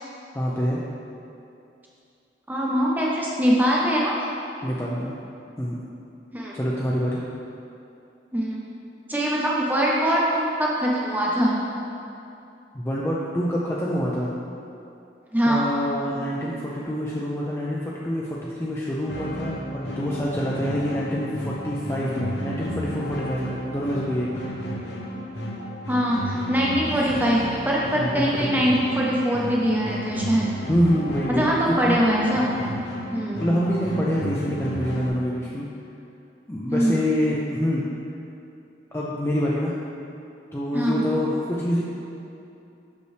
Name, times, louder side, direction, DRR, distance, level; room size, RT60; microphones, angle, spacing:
voice 1, 0.3-0.8 4.6-5.2 5.6-5.8 6.5-7.2 12.7-14.3 15.5-24.3 28.0-28.2 28.5-28.6 30.7-32.0 33.4-35.7 36.5-37.8 38.9-39.7 40.5-41.8, equal, 15° left, -6 dB, 0.4 m, -26 dB
voice 2, 2.5-4.1 6.3-6.5 8.3-8.6 9.1-11.5 15.3-15.6 25.9-30.5 31.3-32.6 33.1-33.4 36.7-36.9 40.7-40.9, equal, 10° right, -4 dB, 0.7 m, -22 dB
sound 1, 19.1-35.1, equal, 70° left, 0.7 m, -33 dB
6.2 x 5.3 x 3.2 m, 2.7 s
head